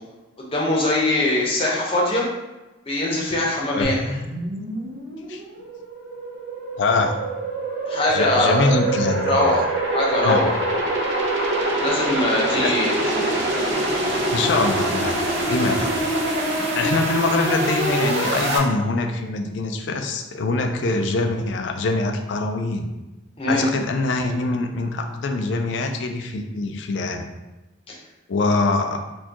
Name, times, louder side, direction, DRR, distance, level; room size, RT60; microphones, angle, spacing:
voice 1, 0.4-2.2 2.9-3.9 7.9-8.7 9.2-9.6 9.9-10.5 11.8-13.4 23.4-23.7 27.9-28.0, left 1 dB, 30° left, -4 dB, 0.7 m, -22 dB
sound 1, 3.8-18.6, right 2 dB, 70° right, 0.7 m, -25 dB
voice 2, 6.8-7.2 8.1-9.5 10.2-10.5 12.5-12.7 14.3-15.2 15.5-15.9 16.8-22.9 23.5-27.2 28.3-29.0, left 3 dB, 65° left, 5 dB, 0.4 m, -23 dB
4.3 x 2.3 x 2.9 m, 1.1 s
head